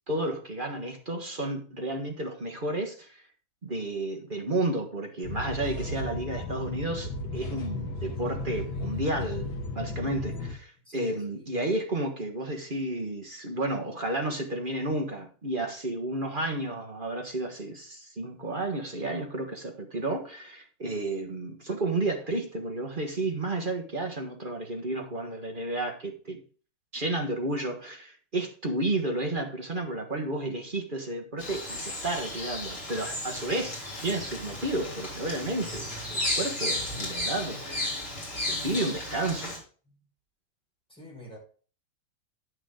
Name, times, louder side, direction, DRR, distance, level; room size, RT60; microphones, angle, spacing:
voice 1, 0.1-3.2 3.6-26.4 26.9-38.0 38.5-39.6, right 2 dB, 30° right, 1.3 m, -32 dB
sound 1, 5.2-10.5, left 2 dB, 75° left, 1.8 m, -34 dB
voice 2, 10.9-11.6 39.9-40.0 40.9-41.4, left 2 dB, ahead, 4.6 m, -47 dB
Bird vocalization bird call bird song, 31.4-39.6, left 1 dB, 35° left, 3.8 m, -34 dB
9.4 x 6.5 x 3.8 m
omnidirectional pair, 2.2 m